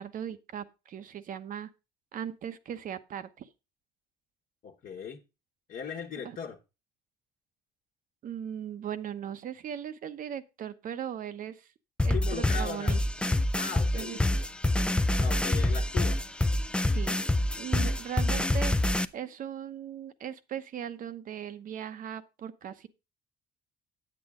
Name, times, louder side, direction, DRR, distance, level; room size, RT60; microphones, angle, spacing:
voice 1, 0.0-1.7 2.1-3.5 6.2-6.4 8.2-11.7 12.0-13.0 13.9-14.2 16.9-17.2 17.6-18.7 19.1-22.9, right 9 dB, 55° right, 0.9 m, -38 dB
voice 2, 4.6-5.2 5.7-6.6 12.1-13.0 13.5-14.5 15.2-16.2, left 6 dB, 55° left, 1.3 m, -39 dB
sound 1, 12.0-19.0, left 1 dB, 5° left, 0.5 m, -26 dB
8.5 x 8.4 x 3.6 m
cardioid pair, 110°, 17 cm